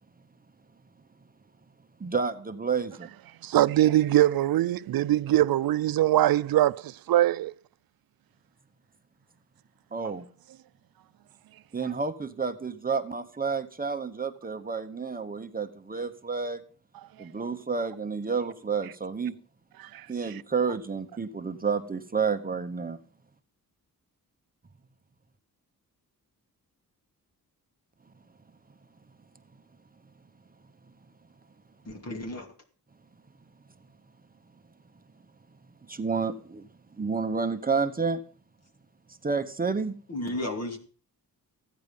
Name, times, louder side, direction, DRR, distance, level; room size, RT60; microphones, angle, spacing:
voice 1, 2.0-3.1 9.9-10.2 11.7-16.6 17.2-19.4 20.1-23.0 35.9-36.7 37.0-38.2 39.2-39.9, right 5 dB, 25° right, 1.0 m, -30 dB
voice 2, 3.4-7.5 19.8-20.1, right 14 dB, 75° right, 0.5 m, -22 dB
voice 3, 31.9-32.5 40.1-40.8, left 1 dB, 45° left, 2.6 m, -33 dB
15.5 x 9.5 x 5.4 m
wide cardioid pair, 140°, 36 cm